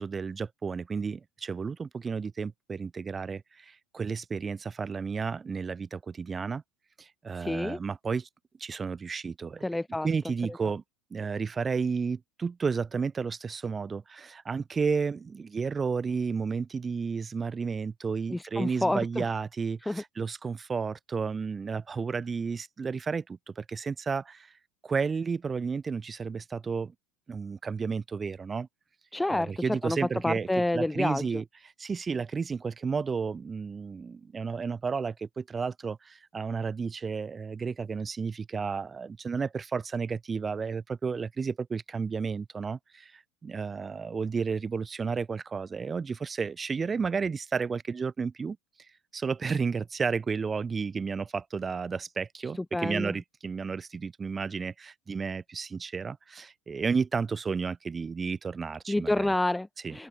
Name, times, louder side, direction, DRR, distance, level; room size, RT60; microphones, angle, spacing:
voice 1, 0.0-6.6 7.0-8.3 8.6-9.7 10.0-10.8 11.1-24.5 24.8-26.9 27.3-28.7 29.3-30.5 30.7-31.4 31.8-48.6 49.1-59.3 59.8-60.0, right 5 dB, 20° right, 2.9 m, -32 dB
voice 2, 7.3-7.8 9.6-10.1 18.3-19.2 19.9-20.0 29.1-30.0 30.2-31.2 52.7-53.1 58.9-60.1, left 1 dB, 5° left, 1.1 m, -29 dB
supercardioid pair, 125°, 0 cm